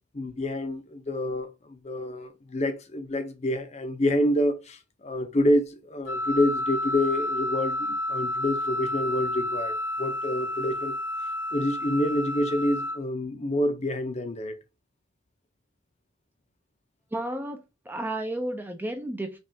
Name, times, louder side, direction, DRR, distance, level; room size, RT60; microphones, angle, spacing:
voice 1, 0.1-11.0 11.5-14.6, left 1 dB, 35° left, 0.6 m, -27 dB
Wind instrument woodwind instrument, 6.1-13.0, left 1 dB, 80° left, 0.6 m, -30 dB
voice 2, 17.1-19.4, right 1 dB, 10° right, 0.4 m, -32 dB
5.2 x 2.4 x 2.7 m
head